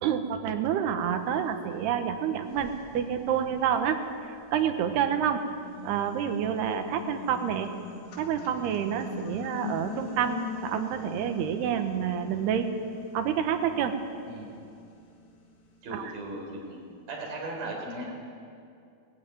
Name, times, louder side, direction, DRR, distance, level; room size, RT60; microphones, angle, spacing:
voice 1, 0.0-5.4 5.8-7.7 8.2-12.7 13.1-14.0 15.9-16.1, right 8 dB, 90° right, 7 dB, 3.3 m, -28 dB
sound 1, 1.8-1.9 2.5-4.8 5.3-16.6, left 6 dB, 85° left, 4.2 m, -43 dB
voice 2, 14.3-14.6 15.8-16.8 17.1-18.1, right 1 dB, 65° right, -1 dB, 5.9 m, -37 dB
19.5 x 15.0 x 9.3 m, 2.5 s
omnidirectional pair, 4.5 m